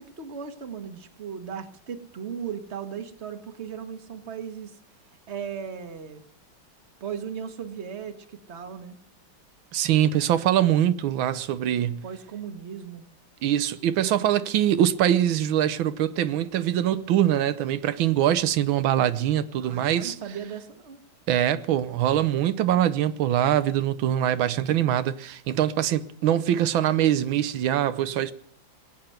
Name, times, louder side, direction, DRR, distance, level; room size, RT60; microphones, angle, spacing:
voice 1, 0.0-4.8 5.1-6.2 7.0-9.0 12.0-13.0 19.6-21.0, right 7 dB, 35° right, 1.6 m, -37 dB
voice 2, 9.7-12.0 13.4-20.2 21.3-28.3, right 11 dB, 90° right, 1.6 m, -23 dB
20.5 x 8.8 x 7.9 m
omnidirectional pair, 2.1 m